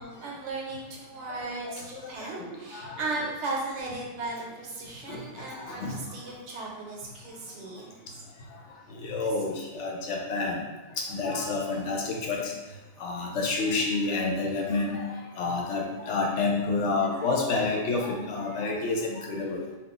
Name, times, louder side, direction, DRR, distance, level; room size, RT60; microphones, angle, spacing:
voice 1, 0.0-7.9 11.6-11.9, right 3 dB, 75° right, -1 dB, 0.9 m, -36 dB
voice 2, 2.2-2.9 5.1-5.2 5.7-6.0 9.0-10.6 11.0-12.5 13.0-15.0 15.4-19.6, left 3 dB, 75° left, 0 dB, 0.9 m, -29 dB
2.4 x 2.4 x 3.7 m, 1.2 s
omnidirectional pair, 1.3 m